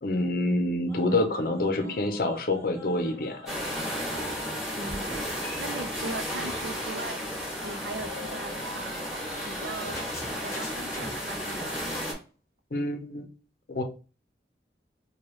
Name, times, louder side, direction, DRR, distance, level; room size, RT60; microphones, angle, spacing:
voice 1, 0.0-3.4 12.7-13.3 13.7-13.8, left 2 dB, 55° left, 6 dB, 0.6 m, -27 dB
sound 1, 0.9-4.6 4.9-11.6 11.8-12.1, equal, 15° left, 1.1 m, -44 dB
voice 2, 1.1-1.6 1.8-2.0 4.8-5.1 5.6-7.2 7.6-9.1 9.5-10.0 10.4-11.8, right 2 dB, 70° right, 9 dB, 0.5 m, -39 dB
sound 2, 3.5-12.1, equal, ahead, 1.6 m, -33 dB
4.6 x 2.3 x 3.1 m, 0.35 s
head